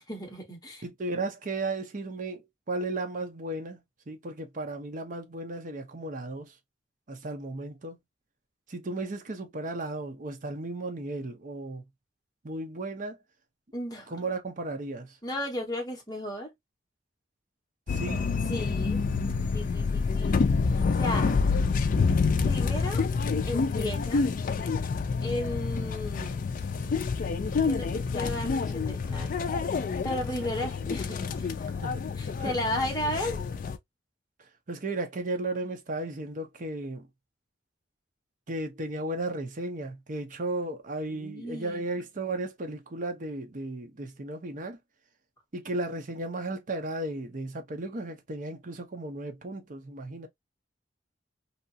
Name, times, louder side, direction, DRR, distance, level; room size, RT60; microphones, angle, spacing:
voice 1, 0.1-0.8 13.7-14.1 15.2-16.5 18.5-19.0 19.5-21.6 22.4-23.0 23.5-24.3 25.2-26.5 27.6-29.3 29.7-31.7 32.2-33.4 41.1-41.9, left 1 dB, 20° left, 1.1 m, -35 dB
voice 2, 0.8-6.5 7.1-8.0 8.7-11.8 12.4-13.2 14.1-15.2 17.9-18.4 31.8-32.1 32.4-32.5 34.7-37.1 38.5-44.8 45.5-50.3, right 2 dB, 45° right, 0.7 m, -35 dB
sound 1, 17.9-33.8, left 4 dB, 45° left, 0.4 m, -28 dB
2.8 x 2.4 x 2.6 m
head